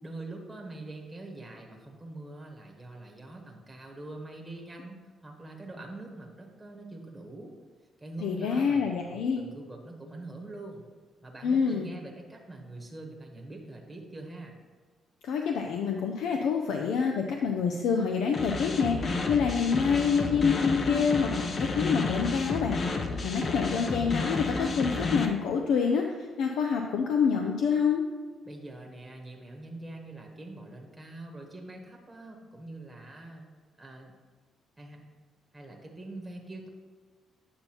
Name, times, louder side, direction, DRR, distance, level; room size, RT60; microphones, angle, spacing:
voice 1, 0.0-7.5 8.0-10.8 11.2-14.6 28.4-33.5 33.8-34.2 34.8-35.0 35.5-36.7, right 2 dB, 10° right, 1 dB, 1.1 m, -44 dB
voice 2, 8.2-9.4 11.4-11.9 15.2-19.0 19.3-22.8 23.2-28.0, left 6 dB, 80° left, 2 dB, 0.5 m, -27 dB
sound 1, 18.3-25.3, left 3 dB, 45° left, 0.7 m, -31 dB
8.6 x 5.5 x 2.9 m, 1.5 s
cardioid pair, 90°, 0 cm